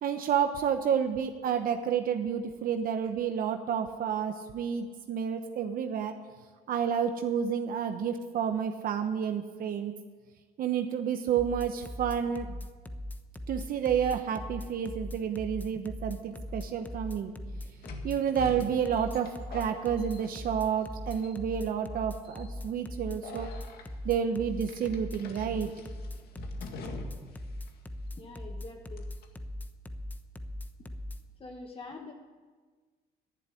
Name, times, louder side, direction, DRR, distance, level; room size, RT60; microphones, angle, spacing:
voice 1, 0.0-6.1 6.7-9.9 10.6-12.6 13.5-17.3 18.0-23.5 24.0-25.7, right 8 dB, 60° right, 6 dB, 1.0 m, -30 dB
sound 1, 11.4-31.2, left 1 dB, 10° left, 1.0 m, -39 dB
sound 2, 16.5-16.6 17.8-20.8 21.1-21.6 22.2-22.5 23.2-23.9 24.7-27.4 27.7-27.8 29.0-29.3, left 3 dB, 65° left, 2.0 m, -45 dB
voice 2, 28.1-29.0 31.4-32.1, left 3 dB, 30° left, 2 dB, 1.3 m, -44 dB
11.5 x 11.0 x 10.0 m, 1.4 s
cardioid pair, 110°, 17 cm